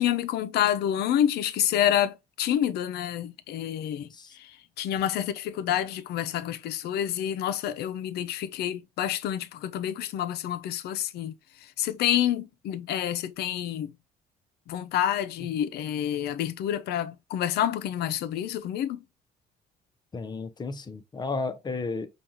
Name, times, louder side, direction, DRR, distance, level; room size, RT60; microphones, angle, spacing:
voice 1, 0.0-4.1 4.4-4.5 4.8-11.3 11.8-13.9 14.7-19.0, left 11 dB, 70° left, 0.5 m, -28 dB
voice 2, 20.1-22.1, left 3 dB, 25° left, 0.7 m, -33 dB
5.1 x 2.4 x 2.9 m
cardioid pair, 110°, 17 cm